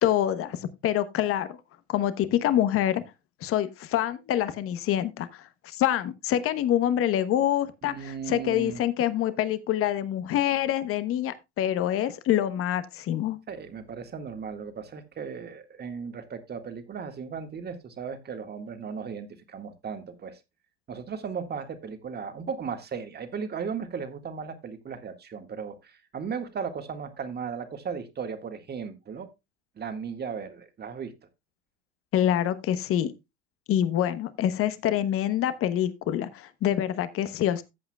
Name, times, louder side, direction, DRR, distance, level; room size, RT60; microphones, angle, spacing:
voice 1, 0.0-1.6 1.9-3.0 3.4-13.4 32.1-33.1 33.7-37.6, left 11 dB, 45° left, 1.1 m, -26 dB
voice 2, 7.8-8.8 13.5-20.4 20.9-29.3 29.8-31.1, right 6 dB, 30° right, 1.9 m, -36 dB
14.0 x 8.0 x 2.3 m
hypercardioid pair, 85°, 32 cm